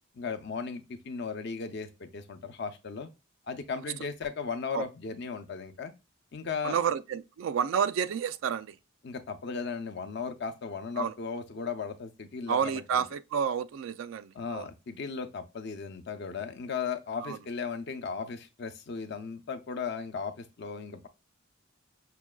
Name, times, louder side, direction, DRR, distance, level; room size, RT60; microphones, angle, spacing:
voice 1, 0.1-3.1 3.5-5.9 6.3-6.8 9.0-13.0 14.3-21.1, left 5 dB, 60° left, 0.5 m, -36 dB
voice 2, 6.6-8.7 11.0-11.1 12.5-14.6 17.2-17.4, right 7 dB, 75° right, 0.3 m, -30 dB
5.8 x 2.2 x 2.3 m
head